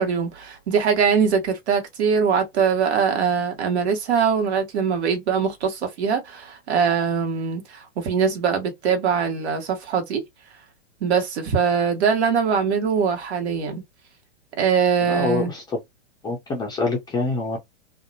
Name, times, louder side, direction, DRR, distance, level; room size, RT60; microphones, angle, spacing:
voice 1, 0.0-10.2 11.0-13.8 14.6-15.5, right 6 dB, 65° right, 1.2 m, -22 dB
voice 2, 15.0-15.6 16.2-17.6, left 3 dB, 10° left, 0.5 m, -25 dB
2.7 x 2.1 x 2.7 m
hypercardioid pair, 120°, 36 cm